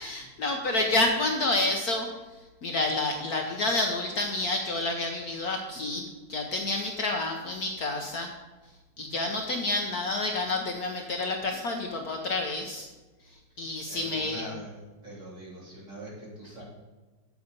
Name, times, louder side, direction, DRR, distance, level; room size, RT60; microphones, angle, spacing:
voice 1, 0.0-2.1 2.6-6.0 6.3-8.3 9.0-12.9 13.6-14.4, left 2 dB, 60° left, 3 dB, 1.2 m, -29 dB
voice 2, 13.9-14.7 15.0-16.6, right 1 dB, 40° right, -6 dB, 3.7 m, -42 dB
8.1 x 8.0 x 5.3 m, 1.2 s
omnidirectional pair, 2.1 m